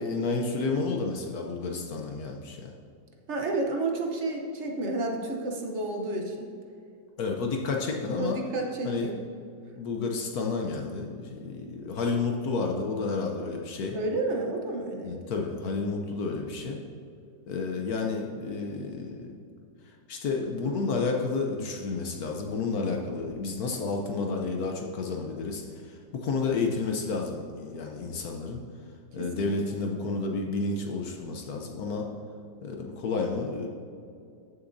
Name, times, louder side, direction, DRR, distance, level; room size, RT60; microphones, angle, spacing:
voice 1, 0.0-2.7 7.2-8.4 8.8-9.2 9.8-14.0 15.0-16.8 17.5-19.4 20.1-28.6 29.1-32.1 32.6-33.7, left 4 dB, 65° left, 2 dB, 1.2 m, -31 dB
voice 2, 3.3-6.5 8.2-9.2 13.9-15.2 29.2-29.5, right 2 dB, 50° right, 1 dB, 1.1 m, -31 dB
14.0 x 6.8 x 2.6 m, 2.5 s
omnidirectional pair, 1.8 m